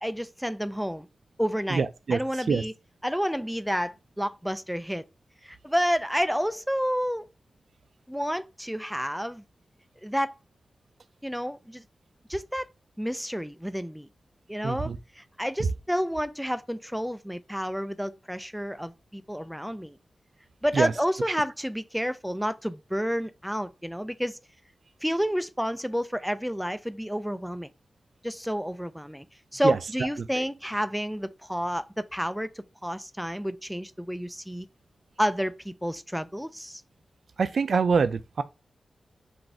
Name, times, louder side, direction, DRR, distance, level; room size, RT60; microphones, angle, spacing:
voice 1, 0.0-1.1 1.4-2.7 3.0-5.0 5.4-7.3 8.1-9.4 10.0-10.3 11.2-11.8 12.3-12.7 13.0-14.1 14.5-20.0 20.6-24.4 25.0-27.7 28.2-29.3 29.5-34.7 35.2-36.8, equal, ahead, 0.3 m, -30 dB
voice 2, 1.7-2.2 2.5-2.6 14.6-15.0 20.7-20.9 29.6-29.8 37.4-38.4, right 5 dB, 70° right, 0.4 m, -24 dB
4.0 x 2.6 x 4.5 m
wide cardioid pair, 85°, 0 cm